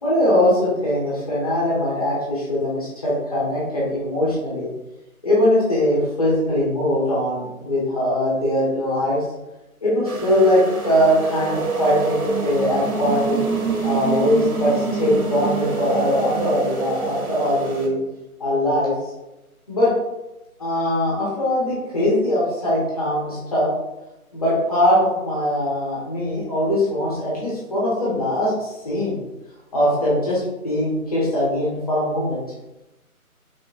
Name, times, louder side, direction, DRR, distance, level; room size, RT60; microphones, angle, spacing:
voice 1, 0.0-4.7 5.2-9.2 9.8-13.4 13.8-17.9 18.4-18.9 19.7-19.9 20.6-23.7 24.3-29.2 29.7-32.4, left 1 dB, 25° left, -7 dB, 1.6 m, -21 dB
sound 1, 10.1-17.9, right 4 dB, 75° right, 1.0 m, -26 dB
5.3 x 3.6 x 2.5 m, 0.97 s
figure-of-eight pair, 160°, 44 cm